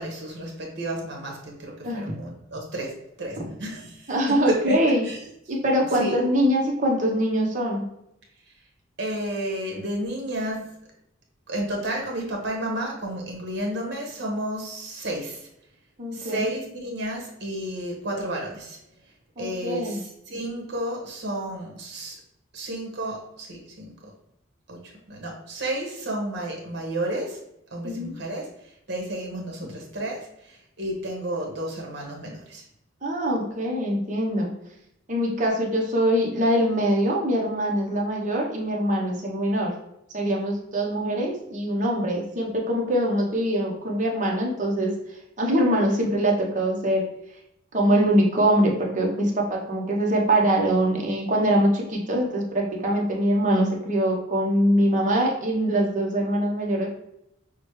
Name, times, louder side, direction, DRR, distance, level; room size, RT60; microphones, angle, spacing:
voice 1, 0.0-5.2 6.0-6.1 8.5-8.6 9.0-10.8 11.5-15.5 16.1-18.8 19.4-22.2 22.5-24.1 24.7-27.4 27.7-32.6, right 1 dB, 55° right, 0 dB, 1.2 m, -32 dB
voice 2, 4.1-5.0 5.5-7.8 16.0-16.5 19.4-20.0 27.8-28.1 33.0-34.5 35.1-39.7 40.1-44.9 45.4-47.0 47.7-56.9, right 1 dB, 40° right, -1 dB, 0.8 m, -23 dB
6.0 x 2.1 x 3.1 m, 0.80 s
head